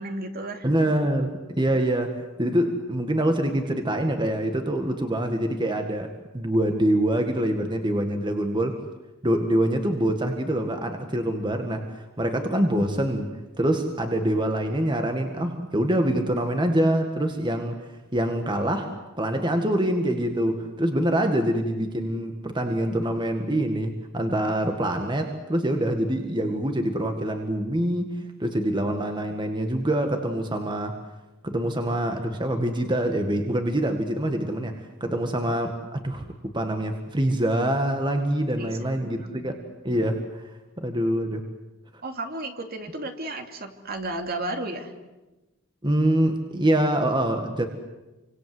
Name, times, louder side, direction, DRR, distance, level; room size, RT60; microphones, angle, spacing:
voice 1, 0.0-0.7 38.6-39.5 42.0-44.9, right 2 dB, 50° right, 5 dB, 2.7 m, -33 dB
voice 2, 0.6-8.8 9.2-17.8 18.1-31.0 31.4-36.3 36.5-40.5 40.8-41.5 45.8-47.7, right 1 dB, 25° right, 5 dB, 1.9 m, -25 dB
28.5 x 26.0 x 7.9 m, 1.1 s
head